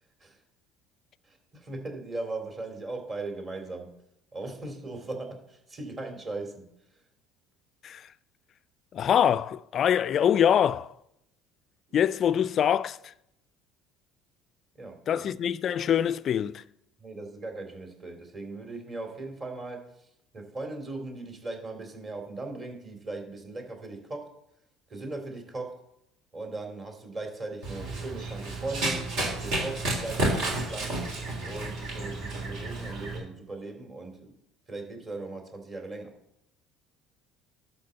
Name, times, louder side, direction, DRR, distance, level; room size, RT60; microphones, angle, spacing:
voice 1, 1.3-3.9 4.3-6.6 14.8-15.3 17.0-19.9 20.3-24.3 24.9-25.8 26.3-29.1 29.4-30.9 31.4-34.3 34.7-36.1, right 2 dB, 35° right, 3.0 m, -38 dB
voice 2, 8.9-10.9 11.9-13.0 15.1-16.6, left 9 dB, 45° left, 0.4 m, -24 dB
Run, 27.6-33.2, right 2 dB, 65° right, 3.4 m, -31 dB
11.5 x 4.1 x 6.9 m
hypercardioid pair, 60°, 0 cm